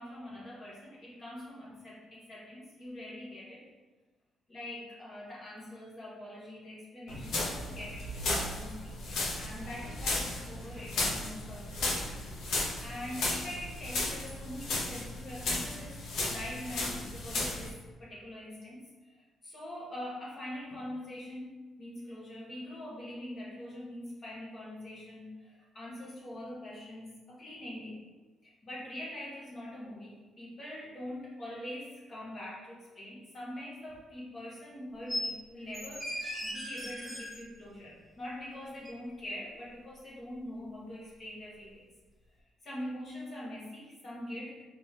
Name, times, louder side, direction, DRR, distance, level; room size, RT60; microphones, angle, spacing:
voice 1, 0.0-3.7 4.5-8.1 8.5-9.0 9.4-12.2 12.8-28.0 28.4-41.9 42.6-44.6, left 1 dB, 35° left, -5 dB, 1.0 m, -43 dB
sound 1, 7.1-17.7, left 2 dB, 70° left, 0.9 m, -35 dB
sound 2, 35.1-35.3 35.7-37.4 38.8-38.9, equal, 10° left, 0.9 m, -37 dB
3.5 x 3.0 x 4.2 m, 1.2 s
cardioid pair, 130°, 0 cm